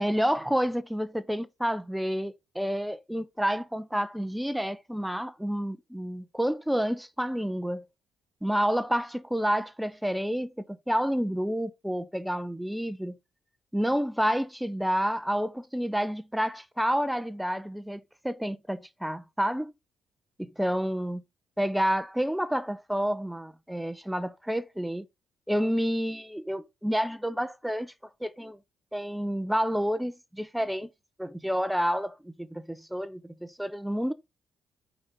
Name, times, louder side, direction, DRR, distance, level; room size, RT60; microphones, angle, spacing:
voice 1, 0.0-7.9 8.4-13.2 13.7-19.7 20.4-21.2 21.6-25.1 25.5-27.9 28.2-28.6 28.9-30.9 31.2-34.1, equal, 5° right, 0.5 m, -29 dB
5.5 x 3.9 x 4.9 m
cardioid pair, 90°, 0 cm